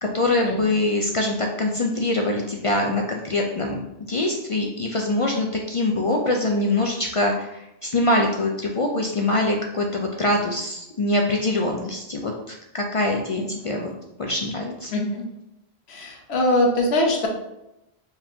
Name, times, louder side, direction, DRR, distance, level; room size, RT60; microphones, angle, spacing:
voice 1, 0.0-3.8 4.1-13.9 14.2-14.9, left 2 dB, 50° left, 1 dB, 0.4 m, -24 dB
voice 2, 14.9-15.2 15.9-17.3, left 1 dB, 90° left, 0 dB, 1.1 m, -22 dB
4.6 x 3.5 x 2.7 m, 0.88 s
omnidirectional pair, 1.1 m